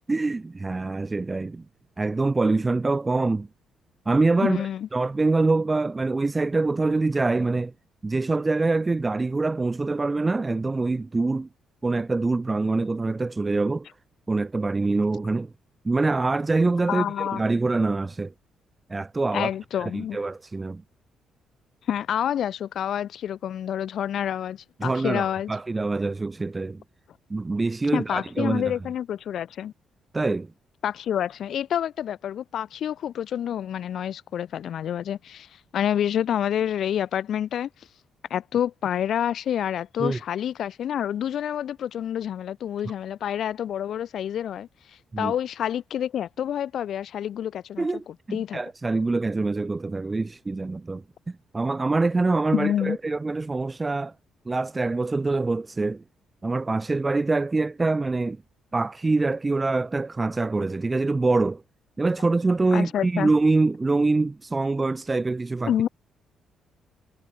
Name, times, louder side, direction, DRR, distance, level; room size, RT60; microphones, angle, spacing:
voice 1, 0.1-1.6 2.0-3.5 4.0-7.7 8.0-11.5 11.8-13.9 14.3-15.5 15.8-18.3 18.9-19.5 19.8-20.8 24.8-26.8 27.3-28.7 30.1-30.5 40.0-40.2 45.1-45.3 47.8-51.0 51.5-54.1 54.4-56.0 56.4-58.4 58.7-61.6 62.0-65.7, right 3 dB, 20° right, 1.7 m, -25 dB
voice 2, 4.4-4.9 16.9-17.4 19.3-20.2 21.9-25.5 27.9-29.7 30.8-37.7 38.3-48.6 52.5-53.0 62.7-63.3 65.7-65.9, left 10 dB, 65° left, 6.2 m, -28 dB
cardioid pair, 90°, 0 cm